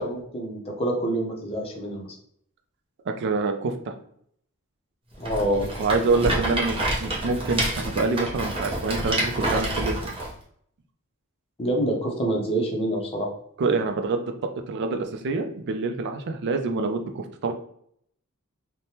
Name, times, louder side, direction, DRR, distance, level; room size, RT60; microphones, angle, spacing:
voice 1, 0.0-2.2 5.2-5.8 11.6-13.3, right 1 dB, 25° left, -1 dB, 0.6 m, -27 dB
voice 2, 3.1-3.9 5.8-10.0 13.6-14.3 14.7-17.5, right 3 dB, 50° right, 6 dB, 0.4 m, -26 dB
Rattle, 5.2-10.3, right 1 dB, 25° right, 0.7 m, -28 dB
3.2 x 2.1 x 2.7 m, 0.67 s
head